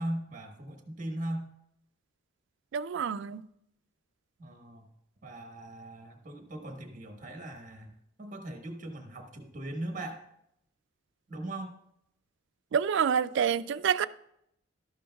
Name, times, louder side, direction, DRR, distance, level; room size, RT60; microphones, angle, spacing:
voice 1, 0.0-1.5 4.4-4.9 5.2-10.2 11.3-11.7, right 1 dB, 40° right, 1.3 m, -39 dB
voice 2, 2.7-3.4 12.7-14.1, right 7 dB, 60° right, 0.3 m, -27 dB
12.5 x 11.5 x 2.3 m
head